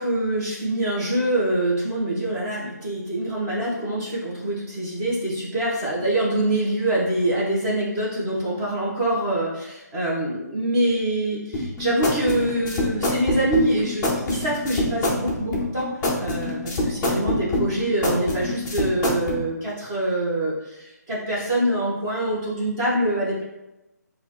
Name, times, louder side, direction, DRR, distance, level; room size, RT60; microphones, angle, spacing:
voice 1, 0.0-15.9 16.2-23.4, right 1 dB, 15° right, -7 dB, 1.1 m, -25 dB
sound 1, 11.5-19.4, left 1 dB, 10° left, 0.6 m, -25 dB
6.7 x 2.5 x 3.0 m, 0.96 s
hypercardioid pair, 165°, 10 cm